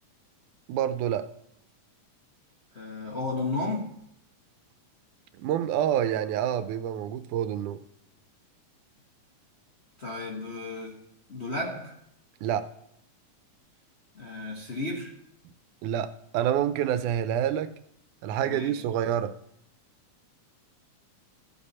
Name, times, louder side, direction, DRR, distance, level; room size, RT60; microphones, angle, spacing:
voice 1, 0.7-1.3 5.4-7.8 12.4-12.7 15.8-17.7 18.2-19.3, right 10 dB, 80° right, 11 dB, 2.1 m, -27 dB
voice 2, 2.7-4.0 10.0-11.0 11.3-12.0 14.1-15.1 18.4-18.8, left 2 dB, 75° left, -1 dB, 0.6 m, -33 dB
14.0 x 7.2 x 4.2 m, 0.76 s
omnidirectional pair, 3.5 m